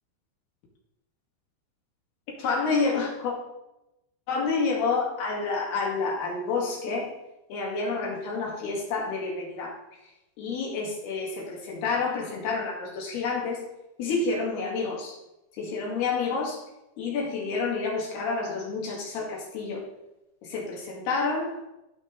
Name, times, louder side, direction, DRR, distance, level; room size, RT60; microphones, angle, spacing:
voice 1, 2.4-3.3 4.3-7.1 7.5-9.8 10.4-13.6 14.0-15.2 15.6-16.6 17.0-19.8 20.4-21.6, left 4 dB, 75° left, -2 dB, 4.2 m, -29 dB
15.0 x 6.3 x 3.4 m, 0.91 s
omnidirectional pair, 4.7 m